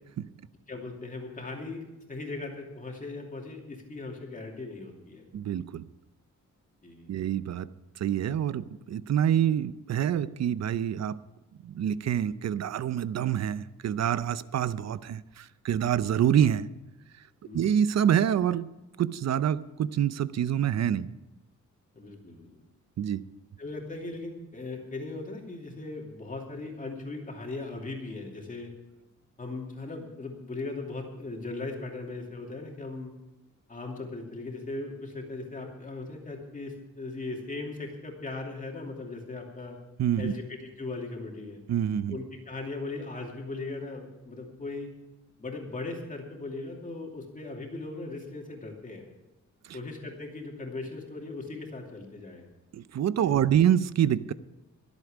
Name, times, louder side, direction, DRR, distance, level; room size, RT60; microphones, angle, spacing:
voice 1, 0.7-5.2 6.8-7.3 17.4-17.7 21.9-22.6 23.6-28.7 29.4-33.1 33.7-39.8 40.2-41.6 42.1-44.9 45.4-49.1 49.7-52.5 53.2-53.4, left 3 dB, 25° left, 0 dB, 2.7 m, -38 dB
voice 2, 5.3-5.9 7.1-7.7 8.0-11.2 11.6-16.7 17.5-18.7 19.0-21.1 23.0-23.2 40.0-40.3 41.7-42.2 49.7-49.8 52.7-54.3, right 9 dB, 60° right, 16 dB, 0.6 m, -26 dB
23.5 x 8.1 x 5.0 m, 1.0 s
wide cardioid pair, 140°, 31 cm